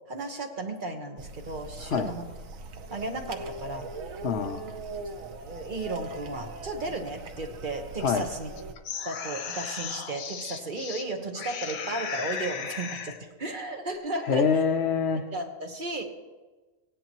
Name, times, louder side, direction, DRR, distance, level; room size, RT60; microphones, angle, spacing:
voice 1, 0.1-2.2 2.9-3.9 5.4-8.5 9.0-14.5 15.1-16.0, right 2 dB, 40° right, 3 dB, 1.3 m, -34 dB
sound 1, 1.2-8.8, right 3 dB, 80° right, 1.2 m, -40 dB
voice 2, 4.2-4.8 8.0-8.3 14.2-15.2, left 6 dB, 60° left, 6 dB, 0.9 m, -25 dB
sound 2, 8.6-11.0 11.3-13.2, left 6 dB, 90° left, 1.3 m, -36 dB
17.0 x 10.5 x 3.0 m, 1.3 s
omnidirectional pair, 1.4 m